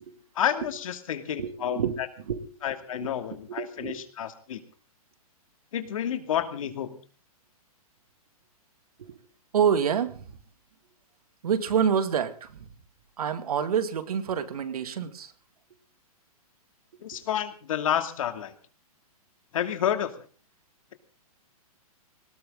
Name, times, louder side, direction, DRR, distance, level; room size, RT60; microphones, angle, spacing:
voice 1, 0.3-2.1 2.6-4.6 5.7-7.0 17.0-18.5 19.5-20.3, left 10 dB, 60° left, 8 dB, 2.5 m, -30 dB
voice 2, 1.3-2.0 2.3-2.5 3.0-3.1 3.6-4.0 9.0-9.1 9.5-10.3 11.4-12.7 13.2-15.3, right 7 dB, 75° right, 10 dB, 2.4 m, -27 dB
19.5 x 18.0 x 3.8 m, 0.38 s
hypercardioid pair, 160°, 19 cm